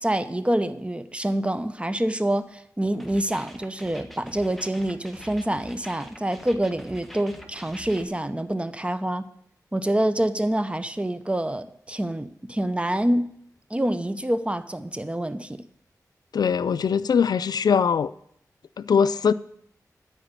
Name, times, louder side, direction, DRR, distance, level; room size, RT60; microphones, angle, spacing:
voice 1, 0.0-9.2 9.7-13.3 13.7-15.6, right 1 dB, 15° right, 0.8 m, -26 dB
sound 1, 3.0-8.0, equal, ahead, 1.5 m, -44 dB
voice 2, 16.3-18.1 18.8-19.3, left 6 dB, 80° left, 0.4 m, -21 dB
13.0 x 5.0 x 8.8 m
cardioid pair, 60°, 7 cm